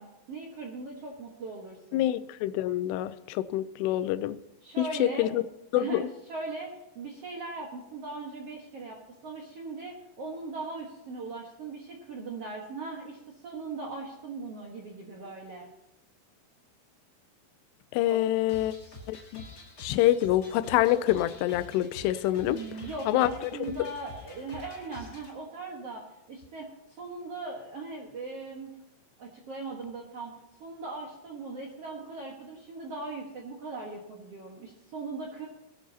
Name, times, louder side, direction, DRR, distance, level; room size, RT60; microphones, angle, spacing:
voice 1, 0.0-2.1 4.6-5.3 5.7-9.0 9.2-15.7 18.0-18.3 22.4-26.0 26.3-28.7 29.2-30.3 30.6-35.5, right 3 dB, 75° right, 1.4 m, -39 dB
voice 2, 1.9-4.4 4.8-5.4 5.7-6.0 17.9-18.7 19.1-19.4 19.8-22.6 23.1-23.3, left 14 dB, 80° left, 2.6 m, -26 dB
sound 1, 18.5-25.3, left 2 dB, 30° left, 1.7 m, -47 dB
20.0 x 12.0 x 2.8 m
omnidirectional pair, 5.0 m